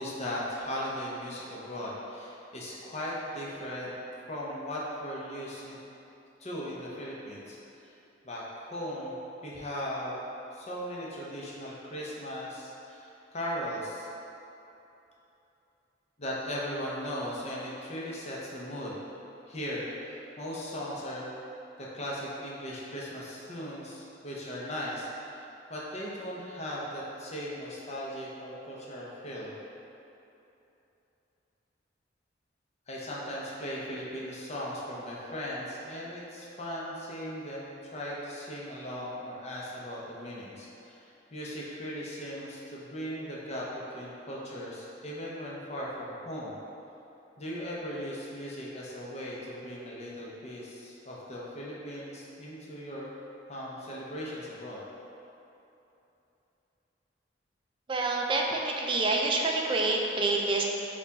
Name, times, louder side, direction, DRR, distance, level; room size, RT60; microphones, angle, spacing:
voice 1, 0.0-4.0 4.3-5.8 6.4-7.6 8.2-9.1 9.4-10.2 10.5-13.1 13.3-14.1 16.2-18.9 19.5-21.3 21.8-25.4 25.7-29.5 32.9-41.0 41.3-43.7 43.9-46.5 47.4-53.2 53.5-54.8, equal, 35° left, -5 dB, 0.7 m, -38 dB
voice 2, 57.9-60.6, right 2 dB, 25° right, 0 dB, 0.4 m, -27 dB
4.4 x 2.4 x 4.0 m, 2.9 s
head